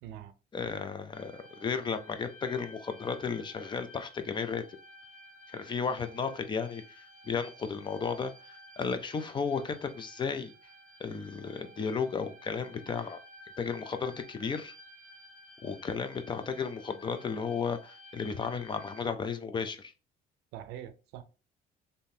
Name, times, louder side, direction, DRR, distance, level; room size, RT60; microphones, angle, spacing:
voice 1, 0.0-0.3 20.5-21.2, right 11 dB, 90° right, 0.5 m, -43 dB
voice 2, 0.5-4.6 5.5-10.5 11.0-13.2 13.6-14.7 15.6-19.9, left 5 dB, 30° left, 0.4 m, -34 dB
sound 1, 1.1-19.0, left 1 dB, 5° left, 1.3 m, -53 dB
3.5 x 2.7 x 2.7 m
cardioid pair, 110°, 17 cm